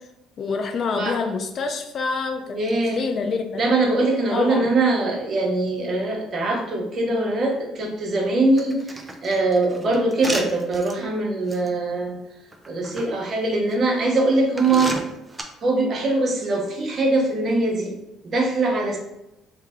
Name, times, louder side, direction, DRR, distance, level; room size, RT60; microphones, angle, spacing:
voice 1, 0.4-2.4 2.9-3.6 4.3-4.7, left 4 dB, 50° left, 5 dB, 0.4 m, -26 dB
voice 2, 2.5-3.0 3.6-12.2 12.7-15.0 15.6-18.0 18.2-19.0, right 2 dB, 50° right, 0 dB, 0.9 m, -22 dB
sound 1, 8.6-10.9 11.5-11.7 12.5-13.1 13.7-13.8 14.6-15.4, right 1 dB, 20° right, 0.5 m, -32 dB
3.2 x 2.1 x 3.5 m, 0.89 s
supercardioid pair, 70°, 0 cm